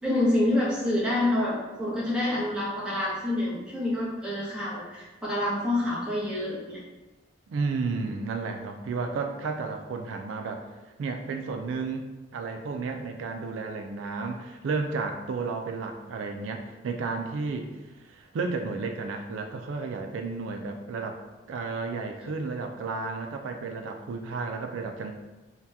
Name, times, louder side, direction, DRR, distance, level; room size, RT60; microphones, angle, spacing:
voice 1, 0.0-6.8, left 1 dB, 5° right, -8 dB, 0.8 m, -27 dB
voice 2, 7.5-10.7 11.0-17.7 18.0-21.2 21.5-25.1, right 4 dB, 85° right, 5 dB, 0.3 m, -32 dB
2.8 x 2.2 x 3.4 m, 1.1 s
head